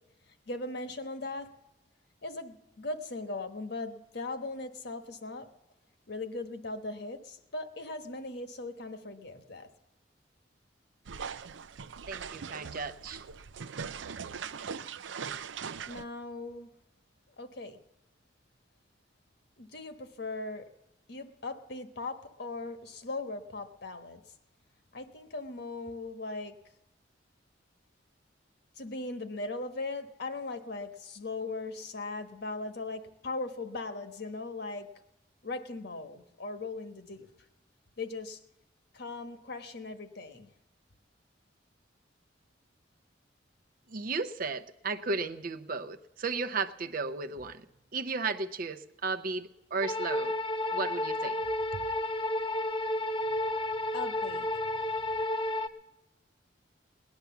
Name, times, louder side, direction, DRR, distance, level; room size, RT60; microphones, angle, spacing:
voice 1, 0.5-1.5 2.2-5.5 6.1-9.7 15.8-16.7 17.4-17.8 19.6-20.6 21.1-24.2 24.9-26.5 28.8-34.9 35.4-37.3 38.0-38.4 38.9-40.5 53.9-54.5, left 3 dB, 60° left, 9 dB, 1.3 m, -39 dB
sound 1, 11.0-16.0, right 6 dB, 85° right, 0.5 m, -40 dB
voice 2, 12.1-13.2 43.9-47.6 47.9-50.3 50.7-51.4, right 4 dB, 50° right, 9 dB, 0.7 m, -34 dB
sound 2, 49.8-55.7, left 1 dB, 30° left, 1.0 m, -31 dB
18.5 x 10.5 x 7.1 m, 0.93 s
head